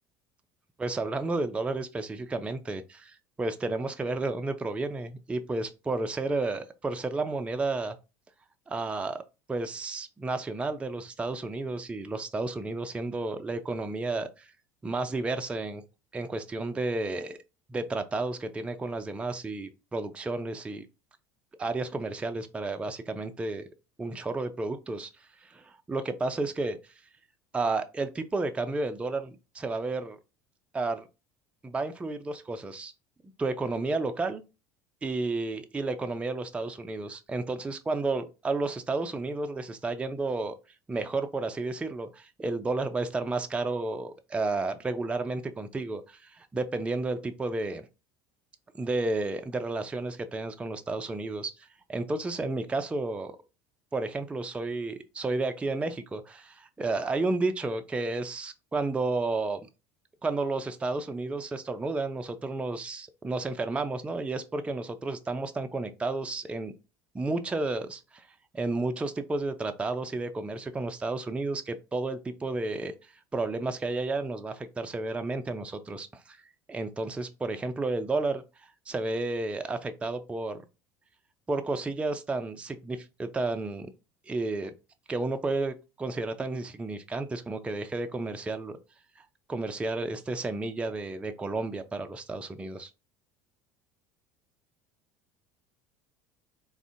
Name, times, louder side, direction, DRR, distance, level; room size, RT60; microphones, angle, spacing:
voice 1, 0.8-7.9 8.7-9.2 9.5-14.5 14.8-15.8 16.1-17.4 17.7-20.9 21.6-23.6 24.0-26.8 27.5-30.2 30.7-31.1 31.6-32.9 33.4-34.4 35.0-40.6 40.9-47.9 48.7-53.4 53.9-59.6 60.2-66.7 67.1-68.3 68.5-76.4 76.7-80.6 81.5-83.9 84.3-84.7 85.1-88.8 89.2-89.3 89.5-92.9, right 3 dB, 10° right, 0.3 m, -32 dB
3.5 x 2.5 x 2.4 m
hypercardioid pair, 70°, 10 cm